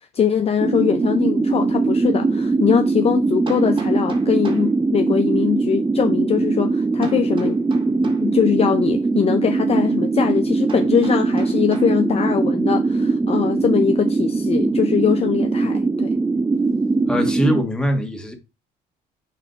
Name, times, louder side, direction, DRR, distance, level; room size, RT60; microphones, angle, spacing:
voice 1, 0.1-7.6 8.2-16.1, left 7 dB, 35° left, 0.6 m, -21 dB
sound 1, 0.6-17.6, right 3 dB, 15° right, 0.3 m, -21 dB
Hammer, 3.5-4.7 7.0-8.3 10.7-12.0, right 3 dB, 30° right, 2.0 m, -37 dB
voice 2, 17.1-18.3, equal, 5° left, 1.6 m, -21 dB
6.6 x 3.2 x 5.1 m
cardioid pair, 110°, 17 cm